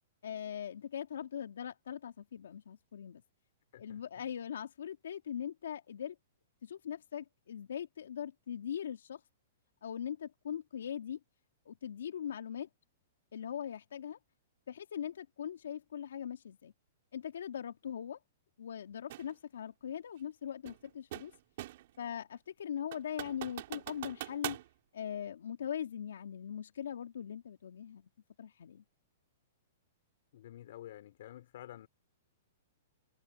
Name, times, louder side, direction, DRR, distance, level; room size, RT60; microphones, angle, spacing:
voice 1, 0.2-3.2 3.8-6.1 6.6-9.2 9.8-11.2 11.7-12.7 13.3-14.2 14.7-16.7 17.1-18.2 18.6-21.3 22.0-24.6 24.9-28.1 28.4-28.8, left 9 dB, 80° left, 2.6 m, -41 dB
sound 1, 19.1-19.3 20.7-22.0 22.4-22.5 22.9-24.7, right 15 dB, 60° right, 5.5 m, -42 dB
voice 2, 30.3-31.9, left 12 dB, 65° left, 4.6 m, -50 dB
hypercardioid pair, 135°, 0 cm